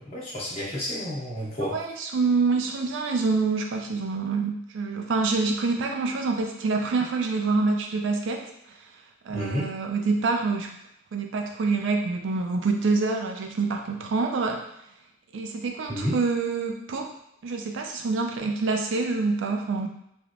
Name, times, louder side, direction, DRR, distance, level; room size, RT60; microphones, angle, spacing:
voice 1, 0.0-1.8 9.3-9.7 15.9-16.2, equal, 30° left, -8 dB, 1.0 m, -30 dB
voice 2, 1.7-8.4 9.3-10.7 11.1-14.6 15.3-17.1 17.4-19.9, right 4 dB, 65° right, 3 dB, 0.4 m, -26 dB
3.2 x 2.1 x 2.5 m, 0.79 s
head